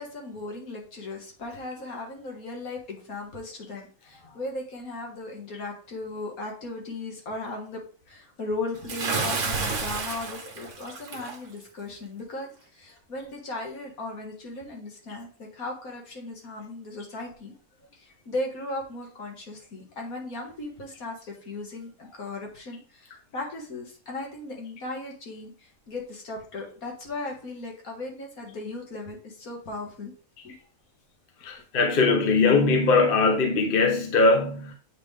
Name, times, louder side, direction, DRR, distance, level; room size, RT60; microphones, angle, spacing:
voice 1, 0.0-7.8 8.1-17.5 17.9-30.1 30.4-30.5, left 2 dB, 60° left, 2.0 m, -37 dB
Bathtub (filling or washing) / Splash splatter, 8.9-11.4, right 4 dB, 55° right, 1.3 m, -30 dB
voice 2, 31.4-34.7, left 3 dB, 40° left, 0.9 m, -21 dB
8.1 x 3.7 x 3.3 m
omnidirectional pair, 1.7 m